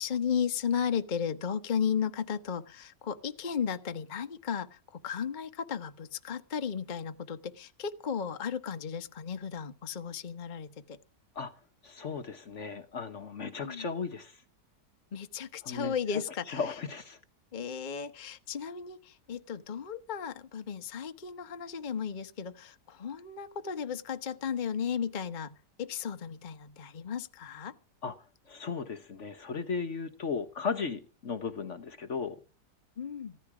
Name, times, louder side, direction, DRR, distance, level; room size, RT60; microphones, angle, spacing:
voice 1, 0.0-11.0 13.6-13.9 15.1-16.7 17.5-27.8 33.0-33.4, left 7 dB, 35° left, 9 dB, 1.0 m, -35 dB
voice 2, 11.8-14.4 15.6-16.2 16.5-17.2 28.0-28.2 28.5-32.4, left 5 dB, 50° left, 9 dB, 1.3 m, -36 dB
15.5 x 13.5 x 4.9 m, 0.34 s
omnidirectional pair, 1.8 m